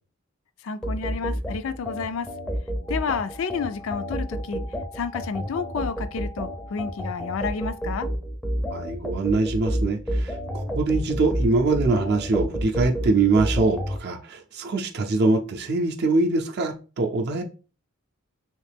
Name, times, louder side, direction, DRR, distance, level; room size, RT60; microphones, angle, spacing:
voice 1, 0.6-2.3 2.9-4.6 4.9-8.1, left 5 dB, 65° left, 0.4 m, -30 dB
sound 1, 0.8-14.0, equal, 5° left, 0.5 m, -29 dB
sound 2, 2.8-8.0, left 1 dB, 90° left, 1.0 m, -47 dB
voice 2, 8.7-17.4, right 3 dB, 50° right, 0.5 m, -23 dB
3.2 x 3.1 x 3.3 m
head